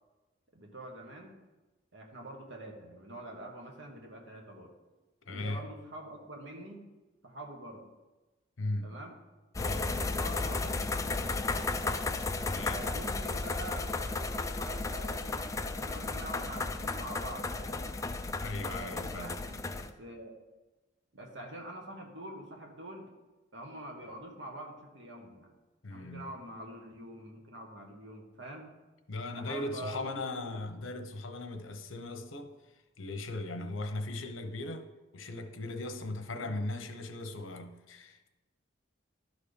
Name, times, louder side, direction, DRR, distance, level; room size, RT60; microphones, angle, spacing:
voice 1, 0.5-1.3 1.9-4.7 5.3-6.9 7.2-7.8 8.8-9.1 9.8-11.4 12.7-17.9 18.6-20.4 21.1-23.1 23.5-25.5 25.9-28.7 29.3-30.6 36.3-36.6, right 1 dB, 65° right, 1.6 m, -45 dB
voice 2, 5.3-5.6 8.6-8.9 9.6-9.9 12.4-12.8 18.4-19.4 25.8-26.4 29.1-32.6 33.0-34.9 35.1-38.3, left 2 dB, 80° left, 0.9 m, -38 dB
sound 1, 9.6-19.9, left 3 dB, 15° left, 0.4 m, -34 dB
12.0 x 4.2 x 5.2 m
head